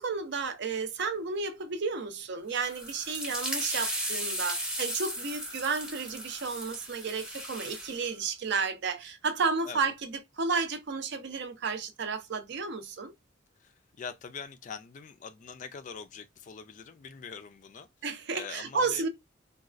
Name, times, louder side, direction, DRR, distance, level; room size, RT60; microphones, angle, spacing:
voice 1, 0.0-13.1 18.0-19.1, right 4 dB, 60° right, 0.5 m, -32 dB
sound 1, 2.6-8.0, equal, 5° right, 0.7 m, -36 dB
voice 2, 13.6-17.9 18.3-19.0, left 6 dB, 40° left, 0.3 m, -43 dB
3.9 x 2.3 x 2.4 m
head